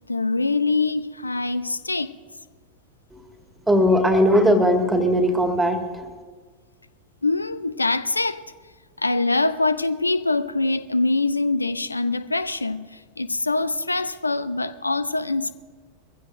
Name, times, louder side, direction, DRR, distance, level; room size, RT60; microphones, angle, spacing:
voice 1, 0.1-2.1 7.2-8.4 9.0-15.5, left 3 dB, 80° left, 0.5 m, -24 dB
voice 2, 3.7-6.1, equal, 5° right, 1.9 m, -19 dB
22.5 x 16.0 x 2.6 m
figure-of-eight pair, 90°, 0 cm